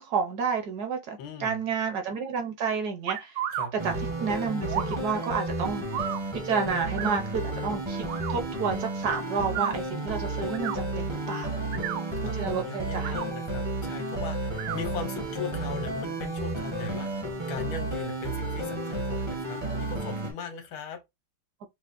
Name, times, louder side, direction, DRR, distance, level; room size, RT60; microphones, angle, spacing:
voice 1, 0.0-3.4 3.8-6.1 6.4-11.5 12.4-13.1, right 5 dB, 65° right, 1.0 m, -30 dB
voice 2, 1.2-1.6 3.5-3.7 11.7-17.1 17.5-21.0, left 5 dB, 80° left, 1.7 m, -39 dB
sound 1, 3.1-3.7 4.7-5.0 5.9-6.2 7.0-7.2 8.1-8.3 9.4-9.7 10.5-10.8 11.6-12.1 12.9-13.3 14.5-14.8, right 10 dB, 85° right, 1.4 m, -32 dB
sound 2, 3.8-20.3, right 2 dB, 35° right, 0.4 m, -32 dB
5.6 x 2.0 x 2.5 m
omnidirectional pair, 2.2 m